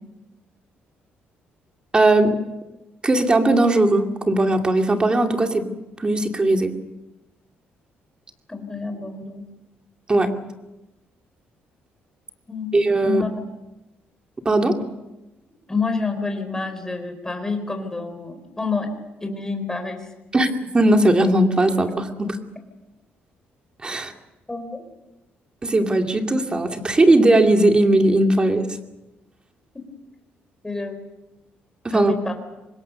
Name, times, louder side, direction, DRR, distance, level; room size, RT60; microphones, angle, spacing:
voice 1, 1.9-2.4 3.0-5.7 6.0-6.8 10.1-10.4 12.7-13.2 14.4-14.8 20.3-20.5 20.7-22.4 23.8-24.1 25.6-28.7 31.8-32.1, right 2 dB, 25° right, 4 dB, 2.5 m, -18 dB
voice 2, 8.5-9.4 12.5-12.7 13.0-13.3 15.7-18.9 19.2-20.1 23.9-24.0 24.5-24.8 29.7-29.8 30.6-31.0 31.9-32.3, left 4 dB, 15° left, 5 dB, 4.5 m, -28 dB
25.5 x 21.0 x 6.8 m, 1.0 s
cardioid pair, 105°, 4 cm